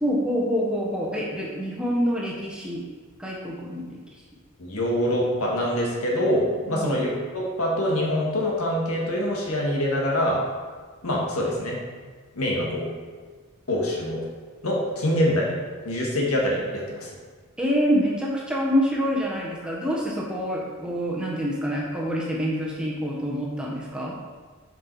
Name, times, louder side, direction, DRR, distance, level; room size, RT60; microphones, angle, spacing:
voice 1, 0.0-2.8 3.2-4.0 6.7-7.0 17.6-24.2, equal, 5° right, -4 dB, 1.2 m, -26 dB
voice 2, 4.6-10.4 11.0-11.8 12.4-12.9 13.7-14.2 14.6-15.5 15.8-17.1, equal, 80° left, -3 dB, 1.8 m, -25 dB
7.4 x 5.4 x 4.7 m, 1.5 s
head